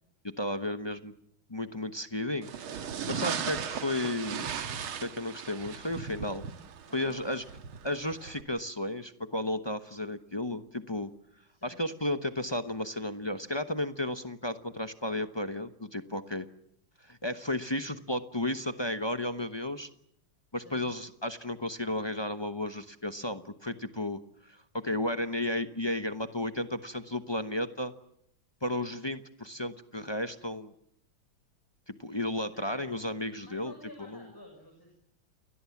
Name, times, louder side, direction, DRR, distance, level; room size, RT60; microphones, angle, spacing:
voice 1, 0.2-1.1 1.5-4.5 5.0-6.4 6.9-7.4 7.8-11.1 11.6-16.5 17.0-19.9 20.5-27.9 28.6-30.7 31.9-33.7 34.0-34.2, left 1 dB, 30° left, 9 dB, 0.4 m, -33 dB
sound 1, 2.4-8.4, right 7 dB, 85° right, 2.3 m, -37 dB
voice 2, 6.9-7.6 11.5-11.9 20.6-20.9 32.5-32.9 33.4-34.9, left 1 dB, 10° left, 2 dB, 6.7 m, -52 dB
29.5 x 21.5 x 7.2 m, 0.73 s
omnidirectional pair, 2.2 m